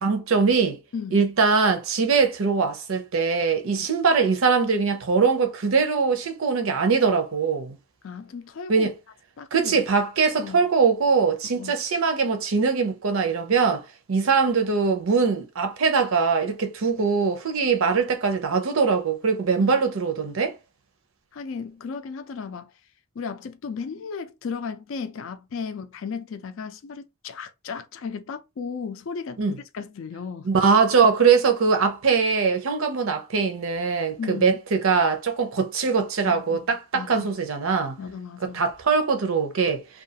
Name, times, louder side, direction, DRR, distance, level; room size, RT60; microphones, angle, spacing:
voice 1, 0.0-0.8 1.1-7.8 8.7-8.9 9.5-20.6 29.4-29.6 30.5-38.0 38.5-39.8, right 5 dB, 70° right, 0.6 m, -22 dB
voice 2, 0.9-1.3 3.8-3.9 8.0-8.9 9.4-9.8 10.4-10.6 11.6-11.7 19.6-19.8 21.3-22.7 23.2-30.5 34.2-34.6 36.3-36.7 36.9-37.3 38.0-38.6, left 5 dB, 65° left, 0.4 m, -35 dB
2.4 x 2.3 x 2.7 m
head